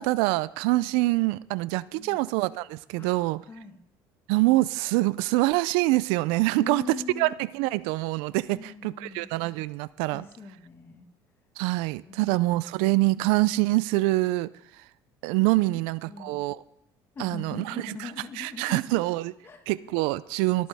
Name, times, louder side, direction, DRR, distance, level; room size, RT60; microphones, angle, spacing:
voice 1, 0.0-3.4 4.3-10.2 11.6-14.5 14.8-14.9 15.2-16.6 17.2-19.3 19.7-20.7, right 19 dB, 85° right, 19 dB, 0.4 m, -25 dB
voice 2, 1.9-2.3 3.0-3.8 6.5-7.3 8.5-9.3 10.1-11.1 12.1-12.3 16.1-16.4 17.2-19.0 19.4-19.6, left 4 dB, 25° left, 5 dB, 1.7 m, -41 dB
19.0 x 8.6 x 3.5 m, 0.75 s
cardioid pair, 130°, 9 cm